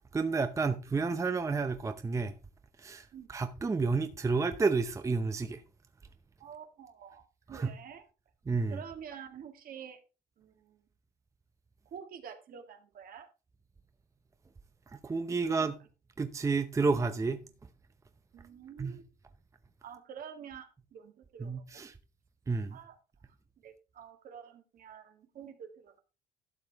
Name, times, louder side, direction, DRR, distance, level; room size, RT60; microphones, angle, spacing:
voice 1, 0.1-2.3 2.8-5.6 7.5-7.7 8.5-8.8 14.9-15.7 16.2-17.4 18.8-18.9 21.4-21.9 22.5-22.8, right 4 dB, 20° right, 0.7 m, -30 dB
voice 2, 6.4-8.1 8.7-10.0 10.4-10.8 11.9-13.3 18.3-19.0 19.8-21.8 22.7-23.0 23.6-26.0, right 7 dB, 60° right, 1.9 m, -48 dB
12.0 x 7.1 x 3.5 m
cardioid pair, 110°, 17 cm